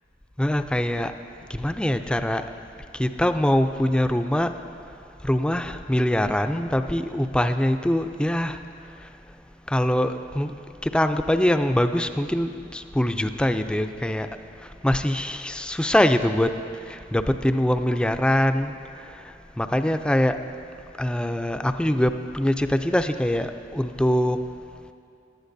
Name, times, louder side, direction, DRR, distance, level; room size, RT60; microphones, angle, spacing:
voice 1, 0.4-1.1 1.5-2.4 3.0-4.5 5.3-8.6 9.7-10.5 10.8-14.3 14.8-16.5 16.9-18.7 19.6-20.4 21.0-24.4, left 1 dB, 5° left, 8 dB, 0.3 m, -23 dB
19.5 x 11.5 x 2.6 m, 2.5 s
head